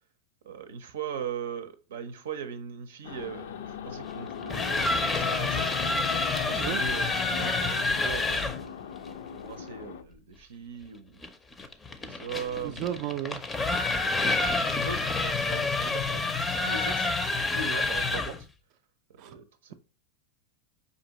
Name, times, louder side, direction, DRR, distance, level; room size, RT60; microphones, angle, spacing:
voice 1, 0.4-5.7 6.5-8.7 9.0-11.2 12.0-13.0 14.6-17.1 17.5-18.4 19.2-19.7, right 6 dB, 85° right, 0.6 m, -39 dB
sound 1, 3.0-10.0, left 8 dB, 80° left, 0.5 m, -39 dB
sound 2, 4.3-8.6 11.2-18.4, left 3 dB, 15° left, 0.5 m, -28 dB
voice 2, 6.5-6.8 12.6-13.4 19.2-19.4, right 11 dB, 50° right, 0.4 m, -33 dB
5.0 x 2.7 x 2.9 m
supercardioid pair, 130°, 0 cm